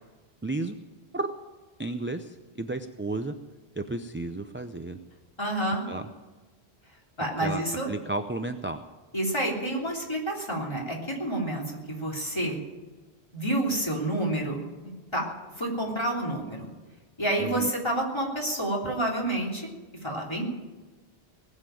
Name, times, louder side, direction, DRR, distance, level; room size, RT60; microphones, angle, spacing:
voice 1, 0.4-0.8 1.1-1.3 1.8-3.3 3.8-5.0 5.9-6.1 7.4-8.9 17.4-17.7, right 2 dB, 15° right, 7 dB, 0.5 m, -33 dB
voice 2, 5.4-5.9 7.2-7.9 9.1-12.6 13.3-15.3 15.6-16.7 17.2-19.7 20.0-20.4, right 1 dB, 25° left, -2 dB, 3.4 m, -29 dB
19.5 x 7.4 x 9.2 m, 1.2 s
omnidirectional pair, 1.1 m